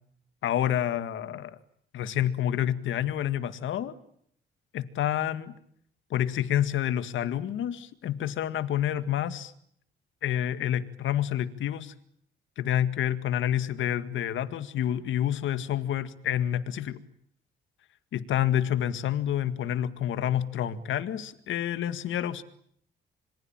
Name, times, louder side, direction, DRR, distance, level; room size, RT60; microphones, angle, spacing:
voice 1, 0.4-1.6 1.9-4.0 4.7-5.5 6.1-9.5 10.2-11.9 12.6-17.0 18.1-22.4, left 11 dB, 75° left, 12 dB, 2.0 m, -28 dB
27.0 x 24.0 x 9.0 m, 0.68 s
cardioid pair, 90°, 20 cm